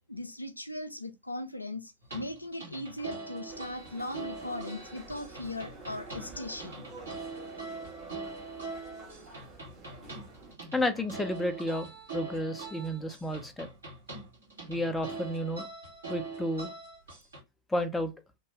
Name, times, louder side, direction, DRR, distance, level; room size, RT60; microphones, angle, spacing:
voice 1, 0.1-6.8, left 1 dB, 85° left, 0.3 m, -39 dB
sound 1, 2.0-17.4, right 3 dB, 70° right, 1.6 m, -43 dB
sound 2, 3.5-10.5, right 3 dB, 30° right, 1.3 m, -49 dB
voice 2, 10.7-13.7 14.7-15.7 16.1-16.7 17.7-18.1, left 1 dB, 10° left, 0.5 m, -31 dB
2.7 x 2.2 x 3.0 m
figure-of-eight pair, 90°, 0 cm